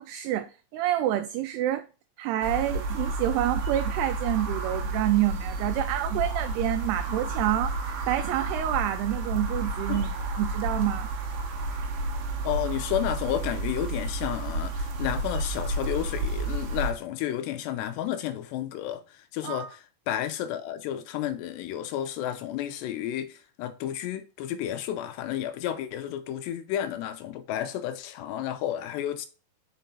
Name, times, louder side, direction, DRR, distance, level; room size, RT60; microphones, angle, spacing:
voice 1, 0.0-1.9 2.2-11.1 19.4-19.7, right 13 dB, 90° right, 2.3 m, -28 dB
sound 1, 2.4-16.9, right 2 dB, 70° right, 2.6 m, -31 dB
voice 2, 12.4-29.3, left 11 dB, 80° left, 2.6 m, -32 dB
5.8 x 5.4 x 3.9 m
omnidirectional pair, 5.1 m